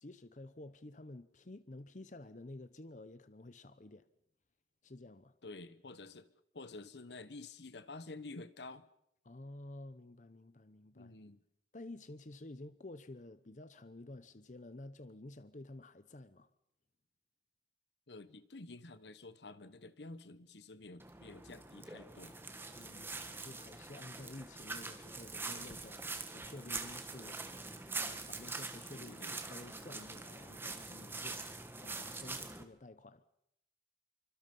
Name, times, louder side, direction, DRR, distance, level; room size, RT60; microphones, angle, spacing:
voice 1, 0.0-4.1 4.8-5.3 9.2-11.1 11.7-16.5 22.7-31.5 31.8-33.2, left 2 dB, 45° left, 0.8 m, -51 dB
voice 2, 5.4-6.3 6.5-8.9 10.9-11.4 18.1-22.4 28.9-29.3, left 3 dB, 80° left, 1.2 m, -50 dB
sound 1, 21.0-32.6, right 3 dB, 15° right, 1.6 m, -44 dB
26.5 x 25.0 x 5.4 m
head